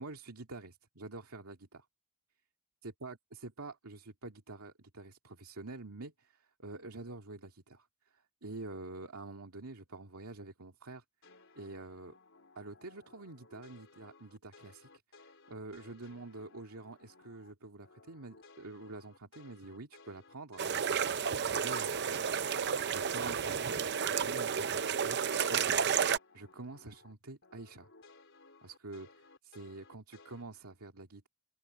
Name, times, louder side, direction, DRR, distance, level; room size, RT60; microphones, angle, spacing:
voice 1, 0.0-1.9 2.8-11.0 11.5-12.1 12.6-14.9 15.2-20.6 21.5-22.3 22.9-23.6 24.1-25.2 25.5-25.7 26.3-27.9 28.6-31.3, right 2 dB, 85° right, 2.2 m, -47 dB
sound 1, 11.2-17.5 17.8-27.1 27.4-30.4, left 3 dB, 60° left, 4.6 m, -60 dB
sound 2, 20.6-26.2, right 7 dB, 50° right, 0.7 m, -31 dB
open air
head